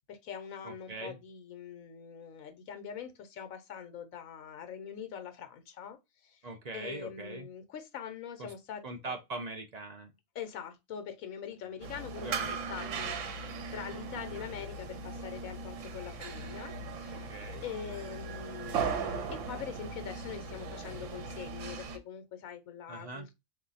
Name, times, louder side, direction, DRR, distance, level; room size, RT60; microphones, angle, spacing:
voice 1, 0.1-6.0 6.2-6.4 6.7-9.1 10.3-17.3 17.6-23.3, left 8 dB, 85° left, 1.2 m, -43 dB
voice 2, 0.6-1.2 6.4-7.5 8.4-8.5 8.8-10.1 11.6-11.8 12.2-13.5 13.8-13.9 17.1-17.6 22.9-23.3, right 2 dB, 45° right, 0.5 m, -42 dB
sound 1, 11.8-22.0, right 5 dB, 70° right, 1.0 m, -38 dB
3.7 x 2.7 x 4.0 m
omnidirectional pair, 1.4 m